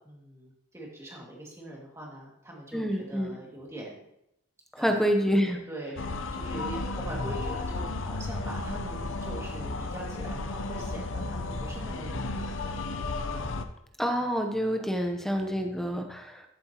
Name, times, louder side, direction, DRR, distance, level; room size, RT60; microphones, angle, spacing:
voice 1, 0.0-4.0 4.8-12.8, right 1 dB, 15° right, -2 dB, 2.1 m, -42 dB
voice 2, 2.7-3.4 4.7-5.6 14.0-16.4, equal, ahead, 4 dB, 0.8 m, -27 dB
sound 1, 6.0-13.6, left 2 dB, 60° left, 0.7 m, -33 dB
13.5 x 7.7 x 2.9 m, 0.80 s
head